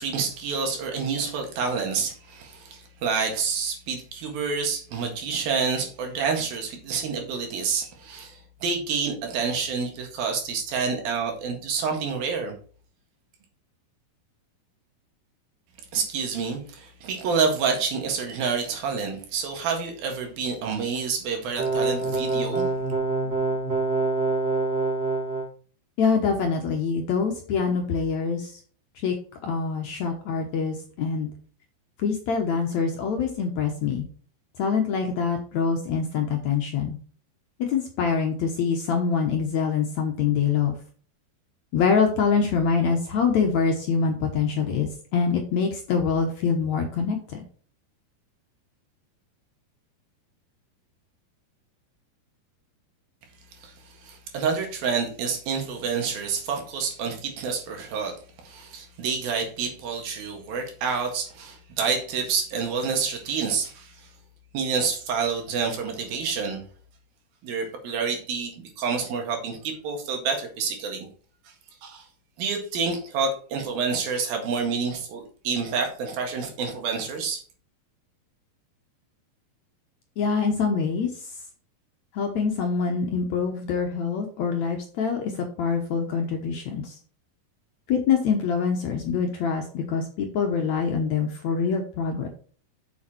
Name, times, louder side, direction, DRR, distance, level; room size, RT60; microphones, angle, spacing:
voice 1, 0.0-12.6 15.9-22.7 53.6-58.2 58.4-64.1 64.5-66.6 67.4-71.1 71.8-72.1 72.4-77.4, right 5 dB, 75° right, 3 dB, 3.6 m, -28 dB
sound 1, 21.6-25.5, right 3 dB, 30° right, 2.1 m, -25 dB
voice 2, 26.0-28.5 29.0-29.1 29.4-31.3 32.0-34.0 34.6-37.0 37.6-40.8 41.7-47.5 80.2-81.1 82.1-87.0 87.9-92.3, left 5 dB, 65° left, 3 dB, 1.9 m, -25 dB
7.1 x 6.8 x 4.3 m, 0.43 s
omnidirectional pair, 4.3 m